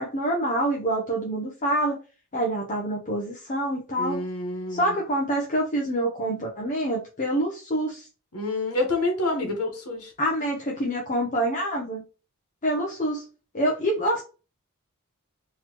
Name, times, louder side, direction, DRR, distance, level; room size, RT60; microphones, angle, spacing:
voice 1, 0.0-2.0 2.3-4.2 4.7-8.1 9.4-9.5 10.2-12.0 12.6-13.2 13.5-14.2, right 1 dB, 35° left, -1 dB, 0.7 m, -26 dB
voice 2, 4.0-4.9 8.3-10.1, left 2 dB, 85° left, 3 dB, 1.3 m, -28 dB
3.9 x 2.9 x 2.9 m, 0.34 s
head